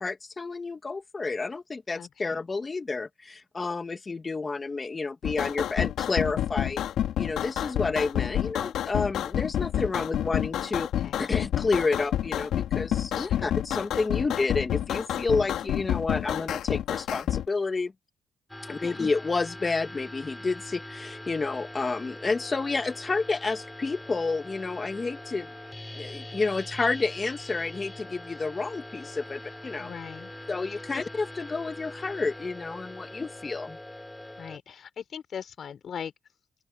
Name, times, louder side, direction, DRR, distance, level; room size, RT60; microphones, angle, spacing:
voice 1, 0.0-6.8 7.2-10.9 11.2-17.9 18.7-25.5 25.9-29.9 30.5-33.8, left 3 dB, 30° left, 2.7 m, -30 dB
voice 2, 2.0-2.4 11.0-11.2 13.1-13.5 18.8-19.0 29.8-30.3 30.9-31.0 34.4-36.1, left 7 dB, 55° left, 4.5 m, -40 dB
sound 1, 5.2-17.5, left 11 dB, 80° left, 2.9 m, -29 dB
sound 2, 18.5-34.6, left 1 dB, 10° left, 6.0 m, -42 dB
open air
cardioid pair, 90°, 0 cm